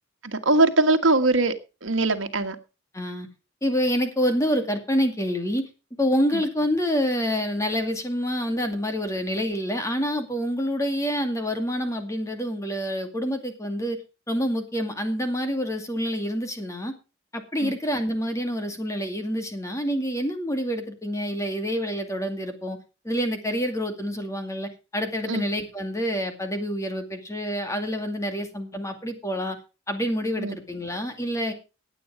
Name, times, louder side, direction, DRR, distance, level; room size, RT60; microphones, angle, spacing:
voice 1, 0.2-1.5 1.8-2.6 6.3-6.4 17.6-17.8 25.3-25.5 30.4-30.6, right 2 dB, 70° right, 1.6 m, -21 dB
voice 2, 2.9-3.3 3.6-5.6 6.0-14.0 14.3-16.9 17.3-22.8 23.0-29.6 29.9-31.5, equal, 15° left, 2.3 m, -27 dB
17.5 x 8.7 x 4.9 m
head